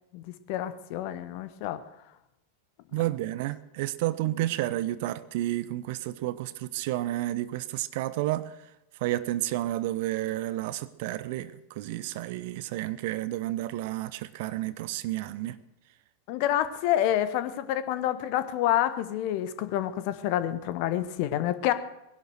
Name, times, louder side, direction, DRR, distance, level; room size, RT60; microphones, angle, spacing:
voice 1, 0.1-1.8 4.3-4.4 16.3-21.7, left 12 dB, 45° left, 12 dB, 1.2 m, -28 dB
voice 2, 2.9-8.5 9.0-15.6, right 15 dB, 50° right, 17 dB, 0.8 m, -31 dB
20.0 x 11.5 x 6.4 m, 0.92 s
figure-of-eight pair, 90°, 0 cm